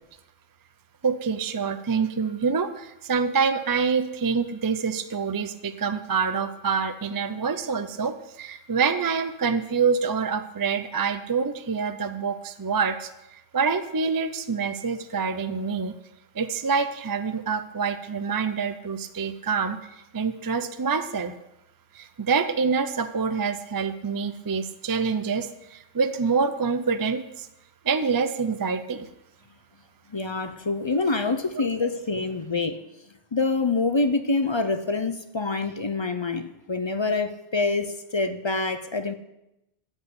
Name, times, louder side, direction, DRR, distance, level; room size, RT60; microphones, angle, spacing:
voice 1, 1.0-13.1 13.5-15.9 16.4-19.8 20.1-21.3 21.9-27.5 27.9-29.1 31.6-31.7, right 5 dB, 30° right, 0.4 m, -26 dB
voice 2, 30.1-32.8 33.3-39.1, left 3 dB, 35° left, 0.4 m, -26 dB
13.5 x 5.4 x 8.0 m
omnidirectional pair, 1.2 m